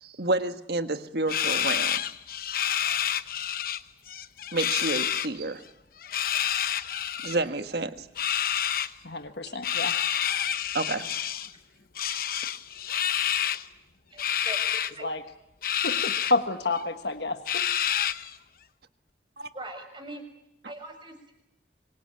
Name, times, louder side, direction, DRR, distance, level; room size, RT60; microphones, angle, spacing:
voice 1, 0.0-2.0 4.5-5.6 7.2-8.1 10.7-11.1 19.4-19.5, right 2 dB, 60° right, 8 dB, 1.5 m, -29 dB
sound 1, 1.3-3.8 4.1-5.3 6.0-7.4 8.2-8.9 9.6-11.5 12.0-13.6 14.2-14.9 15.6-16.3 16.8-16.9 17.5-18.3, left 10 dB, 50° left, 0.9 m, -28 dB
voice 2, 9.0-9.9 15.0-15.2 15.8-17.7, left 3 dB, 70° left, 7 dB, 1.4 m, -29 dB
voice 3, 14.1-14.6 14.9-15.1 19.5-20.2 20.6-21.3, right 2 dB, 25° right, 4 dB, 6.1 m, -41 dB
25.5 x 23.5 x 9.0 m, 0.83 s
head